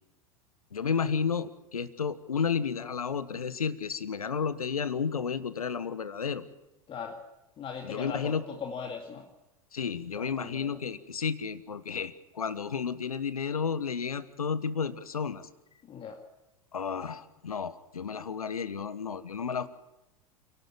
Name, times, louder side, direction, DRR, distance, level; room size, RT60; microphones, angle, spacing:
voice 1, 0.7-6.4 7.8-8.4 9.7-15.5 16.7-19.7, left 6 dB, 75° left, 15 dB, 1.3 m, -32 dB
voice 2, 6.9-7.2 7.6-9.3 10.2-10.8 15.9-16.2, left 6 dB, 30° left, 3 dB, 2.2 m, -39 dB
29.0 x 12.0 x 8.8 m, 0.94 s
figure-of-eight pair, 85°, 19 cm